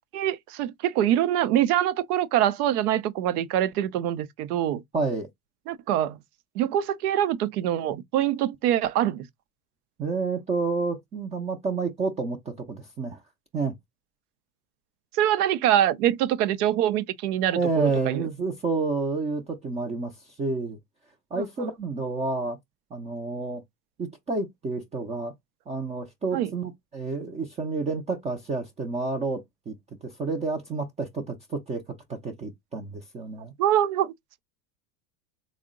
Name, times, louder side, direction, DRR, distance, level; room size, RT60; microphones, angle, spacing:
voice 1, 0.0-4.8 5.7-6.2 6.5-9.3 15.1-18.3 21.4-21.5 26.3-26.5 33.6-34.1, right 11 dB, 85° right, 0.6 m, -24 dB
voice 2, 4.9-5.3 10.0-13.2 13.5-13.7 17.5-20.8 21.3-22.6 22.9-23.6 24.0-25.3 25.7-31.8 32.1-33.5, right 3 dB, 15° right, 0.4 m, -29 dB
3.6 x 2.1 x 3.6 m
supercardioid pair, 130°, 44 cm